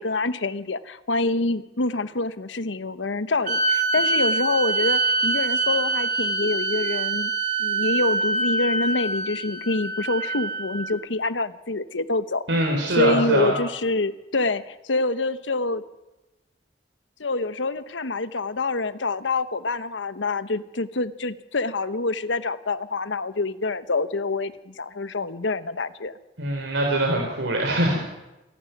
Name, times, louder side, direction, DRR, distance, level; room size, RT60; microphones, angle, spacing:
voice 1, 0.0-7.3 7.6-15.8 17.2-26.1, left 3 dB, 90° left, 13 dB, 1.1 m, -26 dB
sound 1, 3.4-10.9, right 3 dB, 45° right, 2.9 m, -25 dB
voice 2, 12.5-13.5 26.4-28.0, right 1 dB, 90° right, 0 dB, 4.1 m, -23 dB
27.0 x 12.0 x 9.3 m, 1.0 s
head